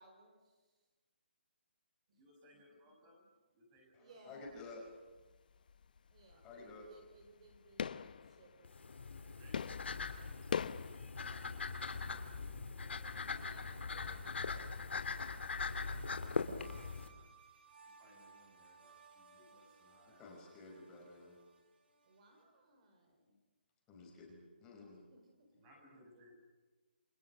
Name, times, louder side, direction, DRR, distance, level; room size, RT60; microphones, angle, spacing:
voice 1, 0.0-0.8 2.1-2.2 4.0-4.5 6.1-9.4 13.2-15.2 15.6-15.9 22.0-23.4 24.9-25.5 25.9-26.3, right 2 dB, 35° right, 4 dB, 4.6 m, -64 dB
voice 2, 2.2-4.2 6.3-6.4 9.3-13.8 15.7-17.3 17.8-20.7 21.2-21.3 25.5-26.3, equal, 15° right, 1 dB, 6.6 m, -65 dB
voice 3, 3.9-4.8 6.4-6.9 20.2-21.4 23.9-25.1, left 3 dB, 10° left, -2 dB, 5.8 m, -52 dB
sound 1, 4.5-4.9 5.2-11.0, left 7 dB, 50° left, 0.8 m, -43 dB
sound 2, 8.6-17.1, left 4 dB, 80° left, 2.9 m, -41 dB
sound 3, 16.6-22.4, right 5 dB, 60° right, 7.7 m, -62 dB
29.0 x 27.5 x 6.3 m, 1.3 s
hypercardioid pair, 170°, 6 cm